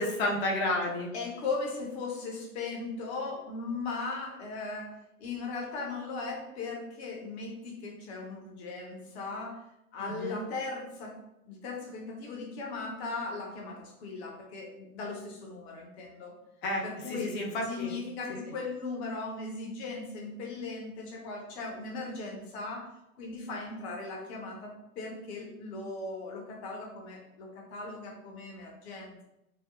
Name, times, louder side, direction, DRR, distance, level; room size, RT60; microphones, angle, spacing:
voice 1, 0.0-1.1 10.0-10.4 16.6-17.9, left 1 dB, 25° left, 0 dB, 0.6 m, -31 dB
voice 2, 1.1-9.6 9.9-16.4 16.8-17.4 17.7-29.2, left 3 dB, 50° left, 0 dB, 0.9 m, -38 dB
3.6 x 2.0 x 2.3 m, 0.88 s
figure-of-eight pair, 90°, 41 cm